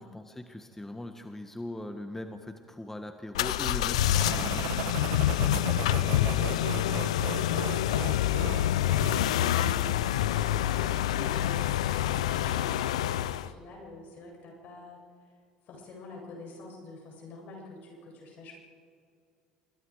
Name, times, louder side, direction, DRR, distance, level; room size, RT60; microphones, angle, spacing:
voice 1, 0.0-5.1, left 1 dB, 10° left, 6 dB, 1.6 m, -40 dB
sound 1, 3.3-13.5, left 12 dB, 85° left, 0.6 m, -27 dB
sound 2, 4.1-10.0, right 12 dB, 70° right, 1.1 m, -38 dB
voice 2, 4.2-4.9 5.3-8.1 8.8-15.0 15.7-18.5, left 2 dB, 60° left, 0 dB, 7.8 m, -46 dB
27.0 x 22.5 x 5.0 m, 2.3 s
hypercardioid pair, 70°, 3 cm